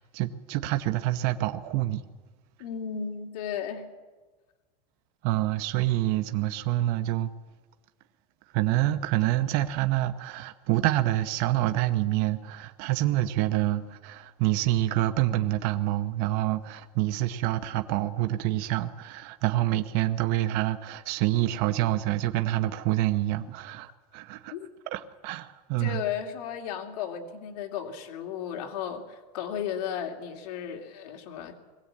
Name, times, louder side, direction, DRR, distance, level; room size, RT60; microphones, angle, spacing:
voice 1, 0.0-2.0 5.2-7.3 8.5-24.5 24.9-26.0, right 15 dB, 50° right, 0.9 m, -27 dB
voice 2, 2.6-3.9 24.5-24.7 25.8-31.6, left 8 dB, 75° left, 2.7 m, -34 dB
21.5 x 16.0 x 8.6 m
supercardioid pair, 160°, 20 cm